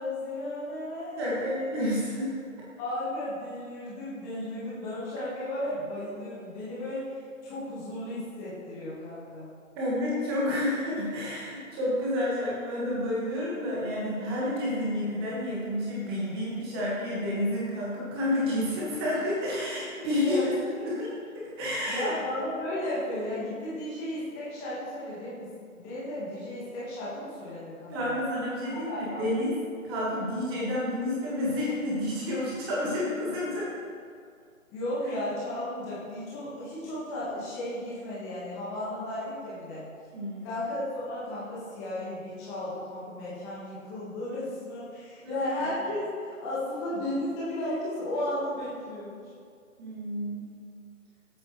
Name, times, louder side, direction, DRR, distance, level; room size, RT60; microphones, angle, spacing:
voice 1, 0.0-1.7 2.8-7.1 7.4-9.5 20.2-20.4 21.9-28.1 28.7-29.3 34.7-39.8 40.4-49.2, left 1 dB, 15° left, -8 dB, 1.6 m, -34 dB
voice 2, 1.2-2.3 9.8-22.1 27.9-29.5 29.8-33.7 40.1-40.6 45.2-45.4 49.8-50.5, left 1 dB, 15° right, -6 dB, 1.8 m, -30 dB
16.5 x 8.9 x 3.2 m, 2.2 s
figure-of-eight pair, 145°, 42 cm